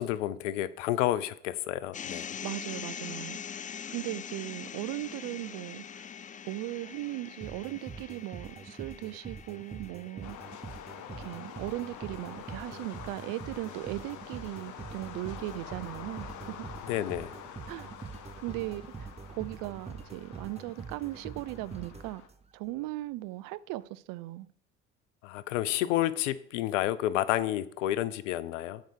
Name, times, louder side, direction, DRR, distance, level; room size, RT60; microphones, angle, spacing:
voice 1, 0.0-2.3 16.9-17.3 25.2-28.8, left 13 dB, 80° left, 0.6 m, -30 dB
sound 1, 1.9-14.1, left 8 dB, 20° left, 0.4 m, -44 dB
voice 2, 2.4-3.4 3.9-6.1 6.4-10.4 11.2-16.7 17.7-17.9 18.4-22.2 22.5-24.5, right 18 dB, 65° right, 0.5 m, -38 dB
sound 2, 7.4-22.7, right 5 dB, 15° right, 0.7 m, -45 dB
sound 3, 10.2-22.3, left 8 dB, 55° left, 1.0 m, -47 dB
6.5 x 4.7 x 6.5 m
hypercardioid pair, 60°, 36 cm